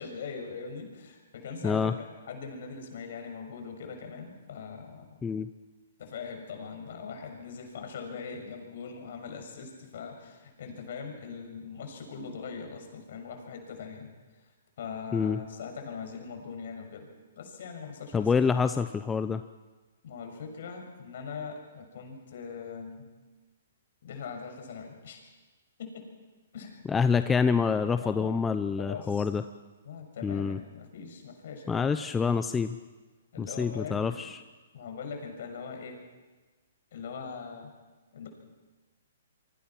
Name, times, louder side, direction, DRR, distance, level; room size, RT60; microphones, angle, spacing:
voice 1, 0.0-5.2 6.0-14.1 14.4-14.5 14.8-17.1 17.4-18.6 20.0-23.1 24.0-25.2 25.8-26.1 26.5-26.8 28.0-28.4 28.8-29.3 29.8-32.0 33.3-34.2 34.7-36.0 36.9-37.7 38.1-38.3, left 5 dB, 60° left, 4 dB, 6.8 m, -41 dB
voice 2, 1.6-1.9 5.2-5.5 15.1-15.4 18.1-19.4 26.9-29.4 30.2-30.6 31.7-32.8 33.4-34.4, left 5 dB, 10° left, 10 dB, 0.7 m, -27 dB
26.5 x 24.0 x 6.0 m, 1.3 s
hypercardioid pair, 130°, 0 cm